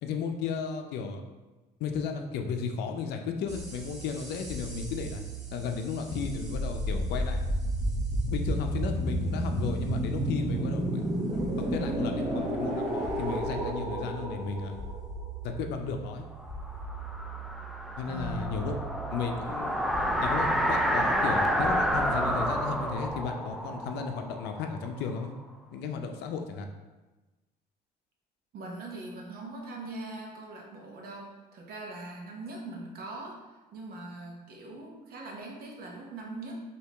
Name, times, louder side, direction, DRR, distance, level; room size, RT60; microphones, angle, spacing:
voice 1, 0.0-1.2 1.8-5.3 5.5-7.4 8.3-11.1 11.4-14.8 15.4-16.3 18.0-18.8 19.1-19.8 20.2-25.3 25.7-26.7, left 5 dB, 80° left, 5 dB, 0.5 m, -34 dB
sound 1, 3.5-23.1, right 1 dB, 40° right, 1.2 m, -33 dB
sound 2, 16.4-25.3, equal, ahead, 0.4 m, -30 dB
voice 2, 18.1-18.5 28.5-36.6, right 2 dB, 65° right, -1 dB, 1.1 m, -41 dB
4.6 x 2.9 x 3.4 m, 1.2 s
cardioid pair, 110°, 17 cm